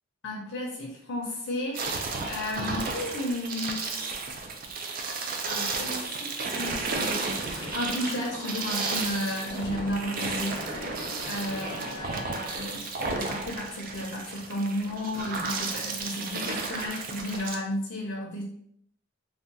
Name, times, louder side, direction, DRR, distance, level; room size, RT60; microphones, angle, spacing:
voice 1, 0.2-3.9 5.5-18.4, left 1 dB, 70° left, -2 dB, 0.6 m, -33 dB
sound 1, 1.7-17.6, right 3 dB, 45° right, 0.4 m, -33 dB
sound 2, 6.4-12.1, left 1 dB, 25° left, 0.5 m, -42 dB
3.5 x 2.2 x 2.6 m, 0.67 s
head